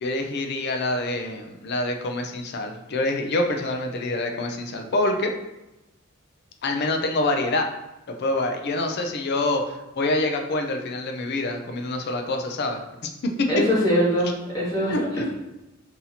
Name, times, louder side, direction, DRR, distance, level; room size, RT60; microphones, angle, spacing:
voice 1, 0.0-5.3 6.6-7.7 8.1-13.5 14.8-15.0, left 2 dB, 50° left, 4 dB, 0.4 m, -26 dB
voice 2, 13.5-15.3, equal, 20° left, -9 dB, 0.9 m, -23 dB
2.8 x 2.7 x 4.0 m, 0.95 s
head